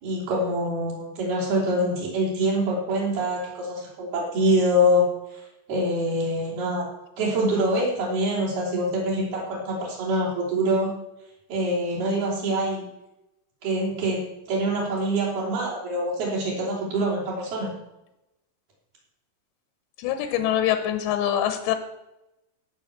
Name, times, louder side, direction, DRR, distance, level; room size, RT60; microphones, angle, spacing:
voice 1, 0.0-5.0 5.7-6.9 7.2-10.9 11.5-12.8 13.6-14.2 14.5-17.7, equal, 60° right, -4 dB, 5.2 m, -25 dB
voice 2, 20.0-21.8, left 11 dB, 90° left, 9 dB, 3.3 m, -24 dB
16.0 x 6.6 x 6.8 m, 0.91 s
omnidirectional pair, 4.9 m